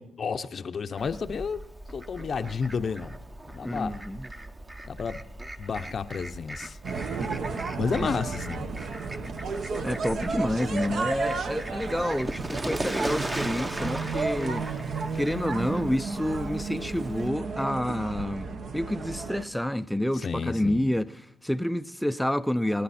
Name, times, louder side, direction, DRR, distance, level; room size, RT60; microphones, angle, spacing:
voice 1, 0.0-1.6 1.9-3.2 3.5-4.0 4.8-5.2 5.6-6.8 7.8-8.7 20.1-20.9, left 5 dB, 45° left, 0.7 m, -31 dB
Fowl, 1.0-17.3, right 1 dB, 20° right, 1.0 m, -38 dB
voice 2, 3.6-4.3 7.5-7.6 8.0-8.1 9.8-14.7 15.1-22.8, left 1 dB, ahead, 0.5 m, -29 dB
sound 1, 6.8-19.4, right 4 dB, 60° right, 1.3 m, -33 dB
27.5 x 10.0 x 4.3 m
cardioid pair, 90°, 0 cm